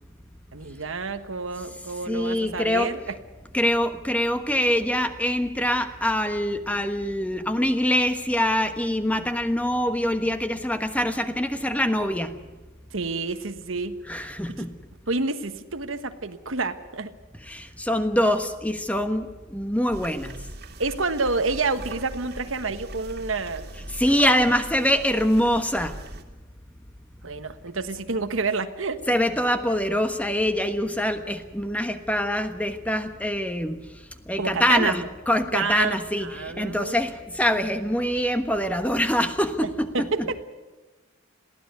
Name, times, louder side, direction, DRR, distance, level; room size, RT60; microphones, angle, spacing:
voice 1, 0.5-3.0 12.9-14.3 14.6-14.7 15.1-17.1 20.8-23.6 27.2-29.0 34.4-34.9 35.5-37.0 39.9-40.4, right 4 dB, 75° right, 9 dB, 1.4 m, -29 dB
voice 2, 2.1-2.9 3.5-12.3 14.1-14.7 17.4-20.4 23.9-26.0 29.1-33.8 34.3-40.1, equal, 5° left, 8 dB, 1.3 m, -24 dB
sound 1, 19.9-26.2, right 1 dB, 55° right, 2.3 m, -40 dB
22.5 x 16.0 x 9.4 m, 1.2 s
head